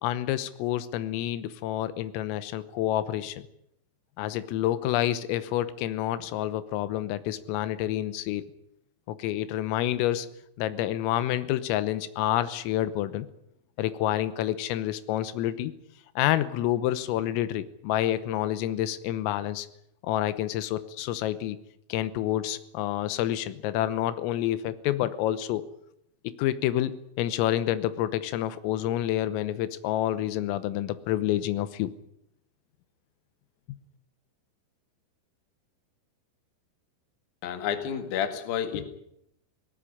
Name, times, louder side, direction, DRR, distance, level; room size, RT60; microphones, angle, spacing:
voice 1, 0.0-3.5 4.2-8.5 9.1-10.3 10.6-13.3 13.8-15.7 16.2-19.7 20.0-21.6 21.9-25.7 26.3-31.9, left 13 dB, 90° left, 14 dB, 3.7 m, -28 dB
voice 2, 37.4-38.8, left 8 dB, 55° left, 8 dB, 3.2 m, -30 dB
18.5 x 17.5 x 10.0 m, 0.77 s
omnidirectional pair, 5.8 m